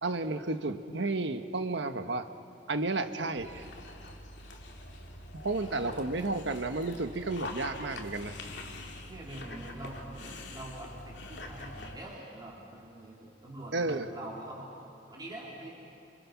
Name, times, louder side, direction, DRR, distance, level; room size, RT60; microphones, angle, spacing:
voice 1, 0.0-2.3 2.7-3.7 5.4-8.3 13.7-14.1, right 2 dB, 80° right, 8 dB, 1.4 m, -32 dB
Dog, 3.4-12.0, left 2 dB, 75° left, 2.6 m, -44 dB
voice 2, 5.6-6.1 9.1-10.1 10.5-14.7 15.1-15.7, right 1 dB, 25° right, -4 dB, 3.7 m, -44 dB
30.0 x 28.0 x 6.1 m, 2.8 s
head